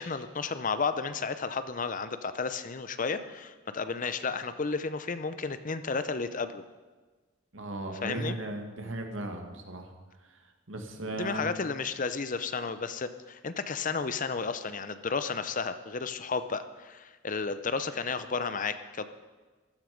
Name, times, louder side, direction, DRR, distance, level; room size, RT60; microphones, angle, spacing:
voice 1, 0.0-6.6 8.0-8.4 11.2-19.1, left 4 dB, 40° left, 11 dB, 0.7 m, -32 dB
voice 2, 7.5-9.9 10.2-11.7, right 1 dB, 75° right, 4 dB, 2.0 m, -37 dB
15.0 x 13.0 x 5.2 m, 1.3 s
head